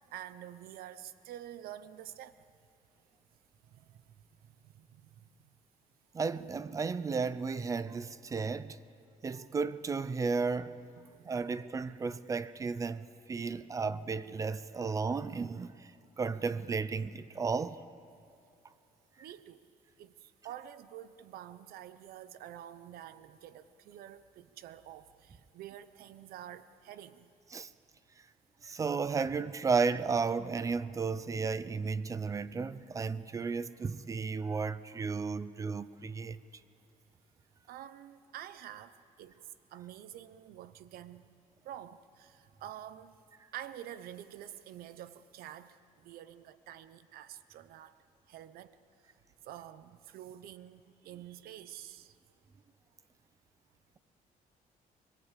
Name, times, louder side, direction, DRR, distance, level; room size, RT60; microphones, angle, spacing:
voice 1, 0.1-2.4 3.6-4.1 4.4-5.2 11.0-11.4 19.2-19.6 20.0-27.3 37.7-39.4 39.7-41.3 41.6-43.2 43.5-48.0 48.3-48.8 49.4-52.2, right 11 dB, 85° right, 0.9 m, -48 dB
voice 2, 6.1-8.8 9.2-10.8 11.2-15.9 16.2-17.8 27.5-27.7 28.6-36.4, right 4 dB, 20° right, 0.5 m, -33 dB
24.0 x 22.5 x 8.3 m
cardioid pair, 175°, 15 cm